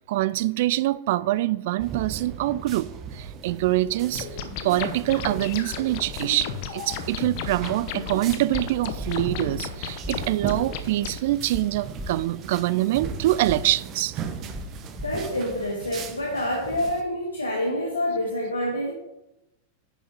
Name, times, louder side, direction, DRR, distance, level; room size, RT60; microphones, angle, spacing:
voice 1, 0.1-4.3 4.6-14.1, right 15 dB, 50° right, 0.3 m, -25 dB
sound 1, 1.8-17.0, right 7 dB, 35° right, 0.9 m, -38 dB
sound 2, 4.2-11.2, left 8 dB, 45° left, 0.9 m, -34 dB
sound 3, 8.5-8.6 9.0-9.1 10.0-10.1 10.5-10.6 11.5-11.6 12.0-12.1 13.0-13.1 13.5-13.6 14.5-14.6 15.0-15.1, equal, 5° left, 1.1 m, -35 dB
voice 2, 15.0-18.9, left 1 dB, 80° left, 1.5 m, -27 dB
9.7 x 5.2 x 5.1 m
figure-of-eight pair, 90°, 0 cm